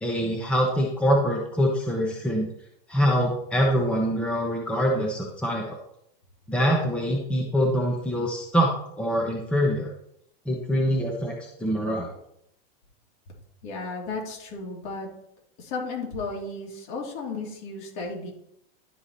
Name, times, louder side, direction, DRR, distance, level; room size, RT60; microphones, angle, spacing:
voice 1, 0.0-2.5 2.9-5.8 6.5-8.7 9.0-9.9 10.5-12.2, equal, 5° left, -1 dB, 1.0 m, -24 dB
voice 2, 13.6-15.1 15.6-18.3, left 3 dB, 55° left, -1 dB, 3.1 m, -34 dB
11.5 x 4.8 x 4.1 m, 0.73 s
supercardioid pair, 155°, 29 cm